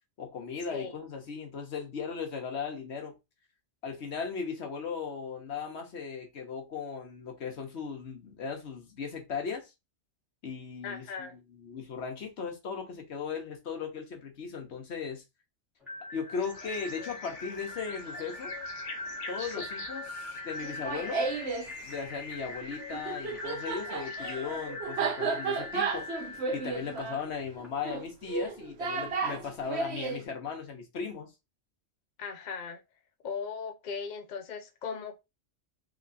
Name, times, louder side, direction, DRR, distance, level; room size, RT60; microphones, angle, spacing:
voice 1, 0.2-3.1 3.8-9.7 10.4-15.2 16.1-18.5 19.3-21.2 21.8-31.3, left 5 dB, 70° left, 1.3 m, -37 dB
voice 2, 10.8-11.4 19.4-19.6 32.2-32.8 33.2-35.2, left 5 dB, 50° left, 0.6 m, -38 dB
sound 1, 15.8-27.7, left 2 dB, ahead, 1.6 m, -42 dB
sound 2, 16.3-24.4, left 4 dB, 85° left, 1.2 m, -47 dB
Laughter, 20.6-21.7 22.9-30.2, right 4 dB, 70° right, 1.0 m, -33 dB
3.7 x 3.0 x 2.6 m
omnidirectional pair, 1.2 m